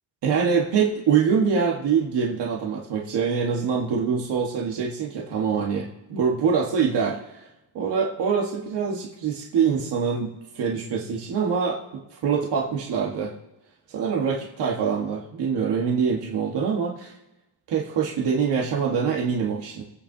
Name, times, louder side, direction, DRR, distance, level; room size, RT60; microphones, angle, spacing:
voice 1, 0.2-7.2 7.7-13.3 13.9-17.1 17.7-19.8, right 6 dB, 80° right, -2 dB, 1.6 m, -24 dB
24.0 x 8.5 x 2.8 m, 0.96 s
cardioid pair, 150°, 41 cm